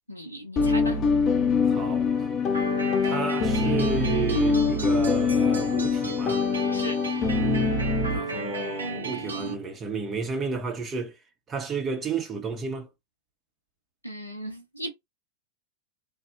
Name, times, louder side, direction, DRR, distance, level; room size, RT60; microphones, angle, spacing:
voice 1, 0.1-1.0 6.7-7.0 14.0-14.9, right 1 dB, 85° left, 0.5 m, -37 dB
sound 1, 0.6-8.2, left 4 dB, 30° left, 0.5 m, -24 dB
voice 2, 1.7-2.3 3.0-6.5 8.1-11.2 11.5-12.9, right 4 dB, 25° right, 0.5 m, -32 dB
sound 2, 2.5-9.5, right 4 dB, 75° right, 0.7 m, -34 dB
3.3 x 2.0 x 2.4 m
figure-of-eight pair, 90°, 0 cm